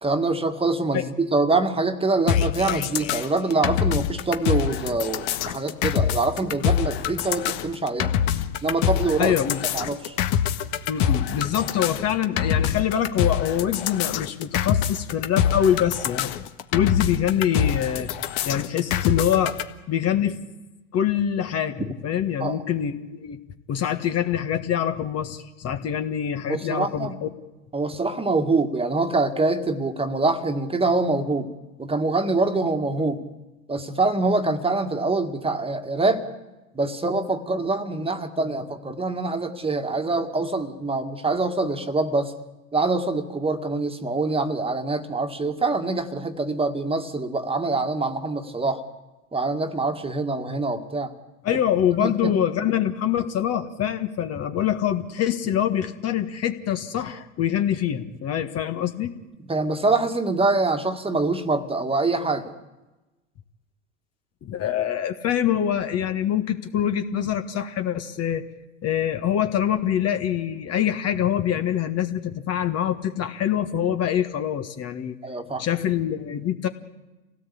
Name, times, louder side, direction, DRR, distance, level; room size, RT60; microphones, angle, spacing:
voice 1, 0.0-8.1 8.6-9.3 9.7-10.2 22.4-22.6 26.5-27.2 27.7-31.5 31.8-33.2 33.7-36.2 36.7-42.3 42.7-48.8 49.3-51.1 52.0-52.3 59.5-62.5 75.2-75.6, right 3 dB, 15° right, 6 dB, 1.9 m, -25 dB
sound 1, 2.3-19.6, left 9 dB, 55° left, 1.6 m, -25 dB
voice 2, 9.2-9.6 10.9-16.3 16.7-18.1 18.4-19.6 19.9-20.4 20.9-23.4 23.7-27.3 51.4-59.1 64.4-68.5 68.8-75.2 75.6-76.7, left 10 dB, 35° left, 8 dB, 1.6 m, -25 dB
27.0 x 17.5 x 8.6 m, 1.1 s
hypercardioid pair, 95°, 43 cm